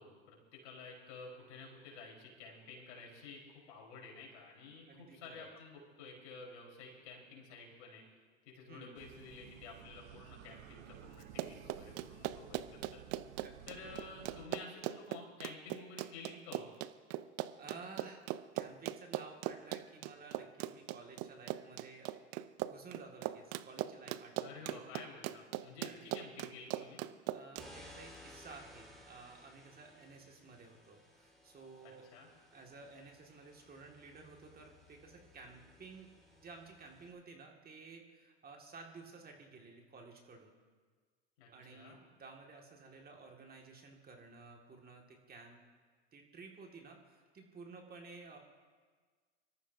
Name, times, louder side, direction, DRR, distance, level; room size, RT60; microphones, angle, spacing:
voice 1, 0.0-8.0 8.5-13.0 13.7-16.7 24.4-27.0 31.8-32.3 41.4-42.0, left 4 dB, 70° left, -2 dB, 4.7 m, -51 dB
voice 2, 4.9-5.5 8.7-8.9 13.4-14.1 17.6-18.2 18.5-22.1 22.6-24.9 25.8-26.1 27.3-32.1 32.5-36.1 36.4-40.5 41.5-45.6 46.1-48.4, right 4 dB, 25° right, 1 dB, 2.1 m, -54 dB
sound 1, 8.9-14.5, right 11 dB, 75° right, 0.9 m, -55 dB
Run, 11.2-27.7, right 14 dB, 45° right, 0.6 m, -40 dB
sound 2, 27.6-37.1, left 1 dB, ahead, 4.2 m, -59 dB
24.5 x 13.5 x 2.8 m, 1.5 s
hypercardioid pair, 90°, 35 cm